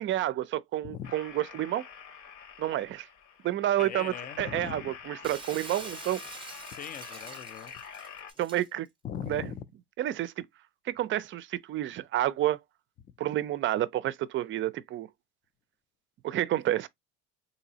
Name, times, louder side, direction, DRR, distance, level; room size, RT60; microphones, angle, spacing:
voice 1, 0.0-1.8 2.6-3.1 3.4-6.2 8.4-8.9 9.3-9.4 10.0-10.4 10.9-12.6 13.2-15.1 16.2-16.9, right 13 dB, 40° right, 0.5 m, -29 dB
sound 1, 1.0-8.3, left 7 dB, 70° left, 1.3 m, -46 dB
voice 2, 3.8-4.9 6.7-7.7 9.0-9.7 13.0-13.1, left 9 dB, 30° left, 0.4 m, -39 dB
Shatter, 5.2-8.7, right 4 dB, 15° right, 0.8 m, -45 dB
3.9 x 2.7 x 2.8 m
supercardioid pair, 95°, 31 cm